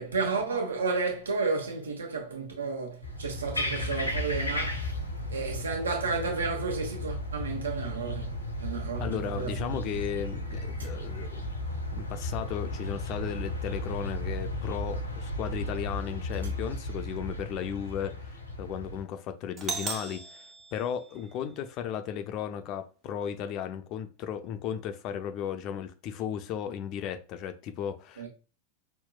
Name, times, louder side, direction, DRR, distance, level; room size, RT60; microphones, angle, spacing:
voice 1, 0.0-4.9 5.3-9.9 28.2-28.3, right 4 dB, 70° right, 1.1 m, -32 dB
sound 1, 3.0-19.0, left 1 dB, 90° left, 0.7 m, -35 dB
voice 2, 9.0-11.5 11.9-20.4 20.7-28.3, left 9 dB, 40° left, 0.4 m, -35 dB
Doorbell, 19.6-21.6, right 4 dB, 30° right, 0.6 m, -38 dB
5.7 x 2.1 x 2.3 m
figure-of-eight pair, 90°, 0 cm